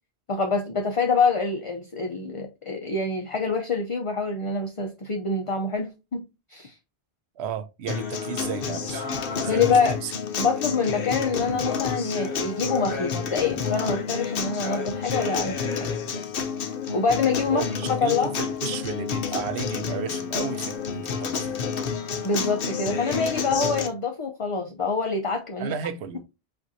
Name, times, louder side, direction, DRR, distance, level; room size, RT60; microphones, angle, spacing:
voice 1, 0.3-6.7 9.5-10.0 10.4-15.9 16.9-17.6 18.0-18.3 22.2-25.7, left 4 dB, 40° left, 0.5 m, -26 dB
voice 2, 7.4-10.1 16.1-16.2 17.5-21.5 25.6-26.2, right 7 dB, 80° right, 0.9 m, -33 dB
Acoustic guitar, 7.9-23.9, left 6 dB, 60° left, 0.8 m, -29 dB
7.5 x 2.6 x 2.7 m
omnidirectional pair, 1.1 m